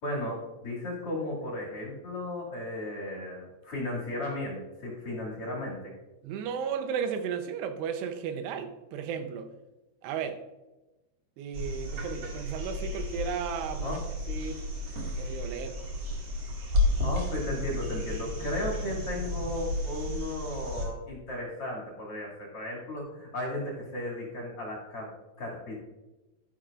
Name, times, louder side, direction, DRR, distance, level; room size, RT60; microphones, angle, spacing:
voice 1, 0.0-5.9 13.8-14.0 17.0-25.1 25.4-25.8, left 1 dB, 40° left, 2.8 m, -35 dB
voice 2, 6.2-9.5 10.0-10.4 11.4-14.0 14.3-14.6 15.2-15.8, right 7 dB, 90° right, 3.0 m, -34 dB
sound 1, 11.5-20.9 23.0-23.1, left 2 dB, 45° right, 2.8 m, -32 dB
12.0 x 11.0 x 2.5 m
omnidirectional pair, 4.7 m